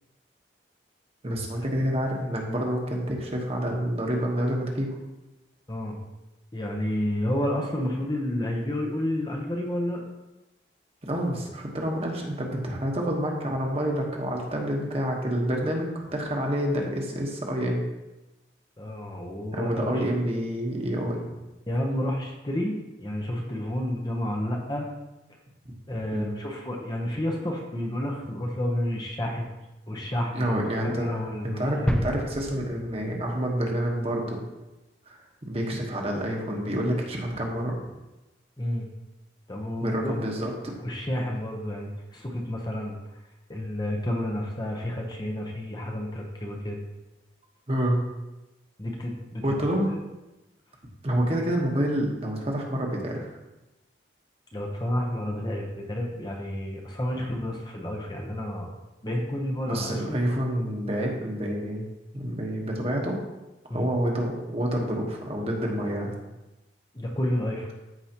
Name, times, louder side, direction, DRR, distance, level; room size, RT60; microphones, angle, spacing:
voice 1, 1.2-4.9 11.0-17.9 19.5-21.3 26.1-26.3 30.3-34.4 35.1-37.8 39.8-40.5 47.7-48.0 49.4-49.9 51.0-53.3 59.7-61.8 62.1-63.2 63.7-66.1, equal, 30° right, 0 dB, 1.3 m, -28 dB
voice 2, 6.5-10.0 18.8-20.0 21.7-24.9 25.9-29.5 29.9-32.1 38.6-38.9 39.5-40.4 40.8-43.0 43.5-46.8 48.8-49.5 54.5-58.7 59.0-60.3 63.7-63.9 66.9-67.7, left 1 dB, 20° left, 0 dB, 0.9 m, -30 dB
sound 1, 31.9-33.7 34.0-34.1, equal, 5° left, 0.5 m, -32 dB
14.0 x 4.9 x 3.0 m, 1.0 s
head